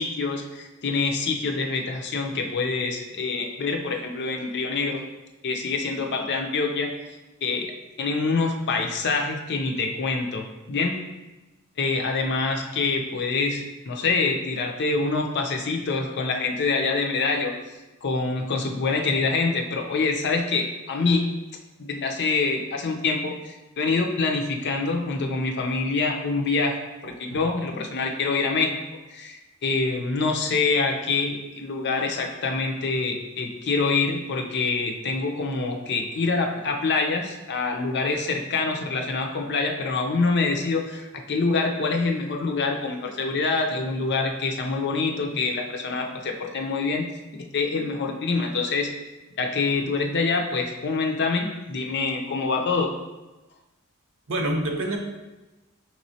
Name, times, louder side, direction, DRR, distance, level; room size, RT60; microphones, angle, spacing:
voice 1, 0.0-5.0 5.4-6.9 7.4-7.7 8.0-11.0 11.8-17.5 18.0-21.3 21.8-26.8 27.0-28.8 29.1-47.1 47.3-48.9 49.4-52.9, left 4 dB, 55° left, 2 dB, 0.5 m, -25 dB
voice 2, 27.0-27.4 54.3-55.0, right 1 dB, 65° right, 1 dB, 0.8 m, -27 dB
5.8 x 3.0 x 2.7 m, 1.1 s
head